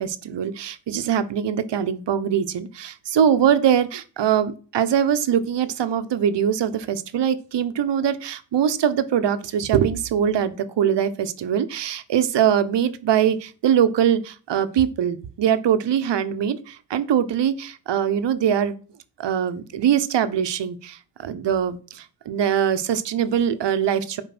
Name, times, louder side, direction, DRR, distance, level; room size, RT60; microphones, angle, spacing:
voice 1, 0.0-18.7 19.2-24.2, right 9 dB, 60° right, 11 dB, 1.2 m, -22 dB
9.6 x 5.3 x 6.1 m, 0.38 s
cardioid pair, 80°, 47 cm